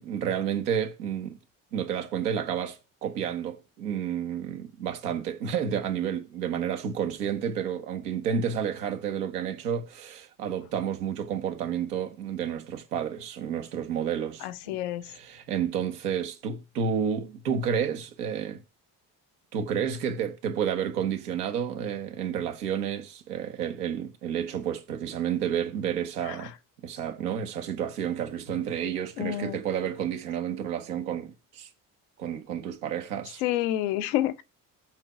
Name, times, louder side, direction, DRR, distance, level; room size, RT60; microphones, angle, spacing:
voice 1, 0.0-1.4 1.7-14.8 15.1-18.6 19.5-26.5 26.8-31.7 32.2-33.4, right 8 dB, 90° right, 1.1 m, -30 dB
voice 2, 14.4-15.1 26.3-26.4 29.2-29.6 33.4-34.4, left 13 dB, 85° left, 0.8 m, -28 dB
7.8 x 4.5 x 5.9 m
hypercardioid pair, 45°, 45 cm